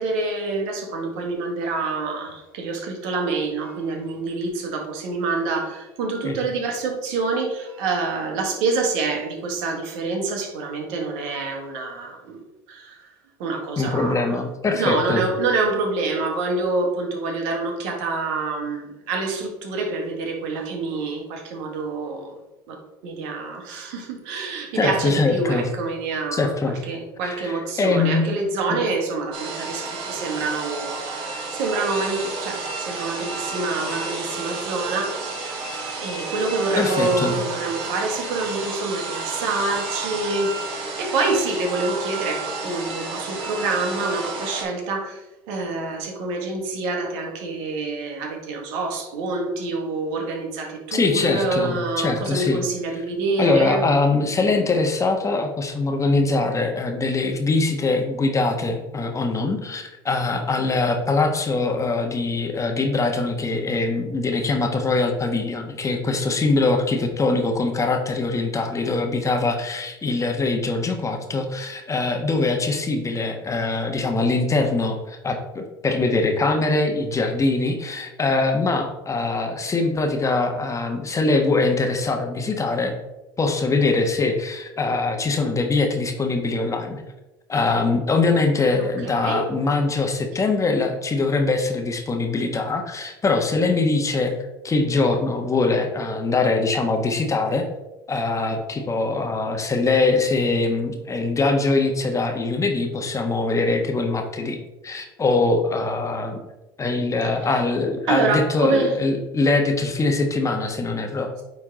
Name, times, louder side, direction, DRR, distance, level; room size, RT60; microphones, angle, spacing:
voice 1, 0.0-12.4 12.7-13.1 13.4-14.4 14.7-22.3 22.7-35.2 36.0-53.8 88.8-89.5 107.4-107.5 108.1-108.9, right 3 dB, 70° right, 2 dB, 1.7 m, -27 dB
voice 2, 13.8-15.2 24.7-25.7 26.3-26.8 27.2-28.3 28.7-28.8 36.7-37.4 50.9-52.6 53.4-82.9 83.4-87.0 87.5-94.3 94.6-97.6 98.1-106.4 106.8-111.3, left 3 dB, 25° left, 4 dB, 1.2 m, -22 dB
sound 1, 29.3-44.6, right 4 dB, 50° right, 2.3 m, -31 dB
9.2 x 3.6 x 3.7 m, 1.0 s
hypercardioid pair, 80°, 12 cm